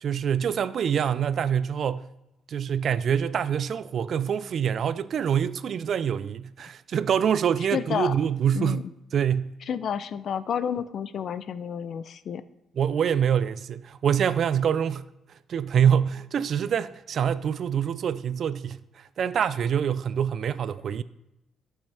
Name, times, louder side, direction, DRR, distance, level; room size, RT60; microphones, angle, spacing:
voice 1, 0.0-2.1 2.5-8.8 9.1-9.5 12.8-15.0 15.5-18.8 19.2-21.0, right 8 dB, 60° right, 0.4 m, -25 dB
voice 2, 7.7-8.2 8.5-8.8 9.7-12.4, left 8 dB, 60° left, 0.5 m, -30 dB
14.5 x 5.6 x 3.4 m
cardioid pair, 90°, 0 cm